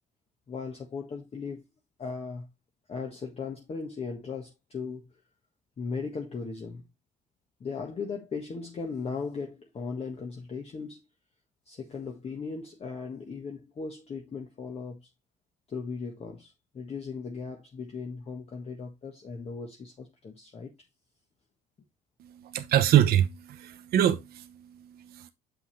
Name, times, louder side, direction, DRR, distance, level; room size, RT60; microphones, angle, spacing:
voice 1, 0.5-1.6 2.0-2.5 2.9-5.1 5.8-6.8 7.6-11.0 11.6-15.1 15.7-20.7, left 5 dB, 35° left, 1.5 m, -37 dB
voice 2, 22.5-24.4 25.1-25.3, right 11 dB, 65° right, 0.9 m, -23 dB
7.2 x 6.0 x 3.3 m
cardioid pair, 110°, 17 cm